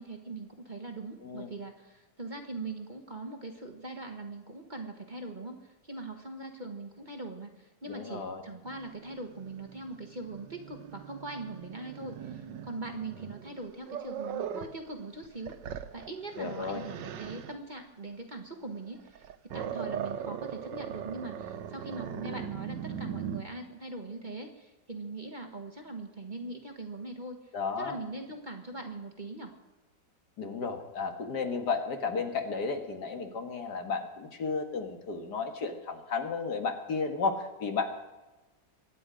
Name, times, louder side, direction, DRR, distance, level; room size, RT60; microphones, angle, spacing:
voice 1, 0.0-29.5, right 2 dB, 30° right, 3 dB, 1.4 m, -41 dB
voice 2, 7.9-8.4 16.4-16.8 27.5-28.0 30.4-37.9, left 4 dB, 65° left, 5 dB, 2.1 m, -33 dB
Growling, 8.7-14.8 15.2-17.6 19.0-23.4, right 8 dB, 85° right, 1.5 m, -40 dB
24.0 x 9.9 x 5.1 m, 1.1 s
omnidirectional pair, 1.9 m